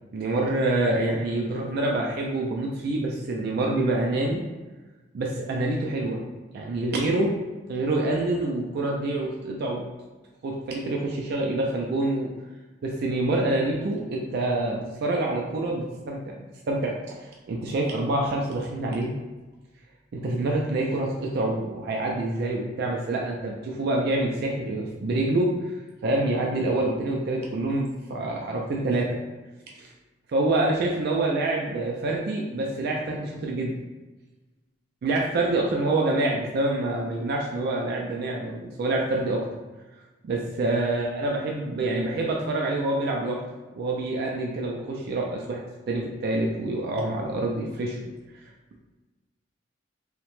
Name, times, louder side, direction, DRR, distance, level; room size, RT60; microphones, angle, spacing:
voice 1, 0.1-4.4 5.1-6.2 6.5-7.4 7.7-9.8 10.4-12.3 12.8-19.1 20.1-25.7 26.0-29.2 29.7-29.9 30.3-33.7 35.0-39.4 40.2-43.4 43.8-48.1, right 2 dB, 55° right, -1 dB, 0.3 m, -26 dB
2.8 x 2.1 x 2.9 m, 1.2 s
head